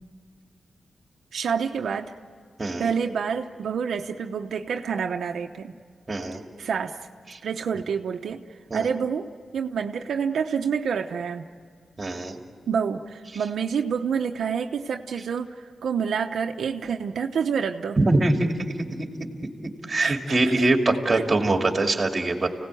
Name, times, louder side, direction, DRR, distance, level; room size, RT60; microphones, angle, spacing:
voice 1, 1.3-2.2 2.8-5.7 6.6-7.0 7.4-8.4 8.7-9.3 9.5-11.5 12.7-18.0 20.0-20.7 21.1-21.2, right 6 dB, 85° right, 4 dB, 0.9 m, -28 dB
voice 2, 6.1-6.4 8.7-8.9 12.0-12.4 18.0-18.7 19.0-19.1 19.6-22.5, right 2 dB, 25° right, 3 dB, 2.6 m, -23 dB
30.0 x 17.5 x 9.2 m, 2.1 s
wide cardioid pair, 145°, 0 cm